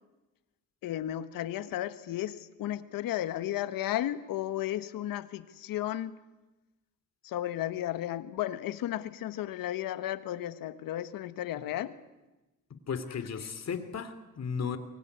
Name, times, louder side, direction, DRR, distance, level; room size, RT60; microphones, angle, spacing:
voice 1, 0.8-6.2 7.2-11.9, left 13 dB, 85° left, 12 dB, 1.5 m, -34 dB
voice 2, 12.9-14.8, left 6 dB, 50° left, 11 dB, 3.0 m, -35 dB
24.0 x 22.5 x 9.6 m, 1.1 s
cardioid pair, 85°, 33 cm